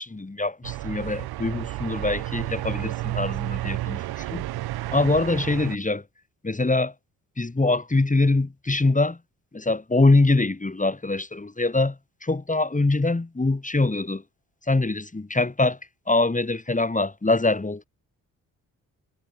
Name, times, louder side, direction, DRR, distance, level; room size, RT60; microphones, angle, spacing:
voice 1, 0.0-4.5 4.9-6.0 6.4-6.9 7.4-9.2 9.5-14.2 14.7-15.8 16.1-17.8, left 2 dB, 20° left, 3.4 m, -23 dB
sound 1, 0.6-5.8, right 16 dB, 80° right, 1.4 m, -31 dB
supercardioid pair, 50°, 37 cm